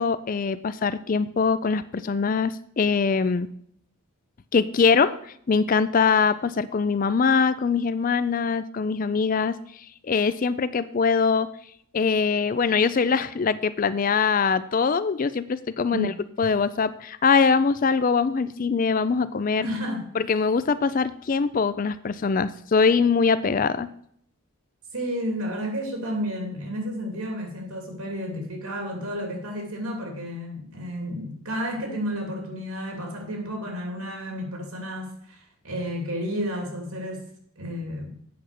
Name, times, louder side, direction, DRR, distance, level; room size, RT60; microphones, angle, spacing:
voice 1, 0.0-3.5 4.5-9.6 10.0-11.5 11.9-16.1 16.4-19.7 20.2-23.9, left 5 dB, 40° left, 14 dB, 0.4 m, -23 dB
voice 2, 19.6-20.1 24.9-37.2 37.6-38.2, equal, 85° right, 2 dB, 2.7 m, -31 dB
8.6 x 5.7 x 6.6 m, 0.66 s
head